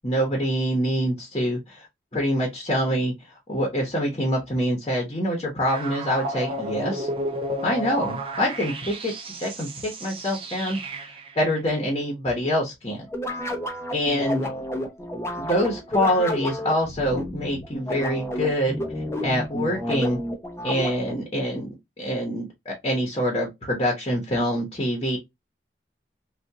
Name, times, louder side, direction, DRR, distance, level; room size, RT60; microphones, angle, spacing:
voice 1, 0.0-1.9 2.1-3.1 3.5-7.1 7.6-9.1 9.4-10.8 11.4-13.1 13.9-14.5 15.4-18.8 19.2-20.2 20.6-21.7 22.0-25.2, equal, 30° left, 1.0 m, -25 dB
sound 1, 5.7-11.4, right 1 dB, 30° right, 0.7 m, -32 dB
sound 2, 13.1-21.2, left 1 dB, 15° left, 0.6 m, -30 dB
3.5 x 2.5 x 2.7 m
head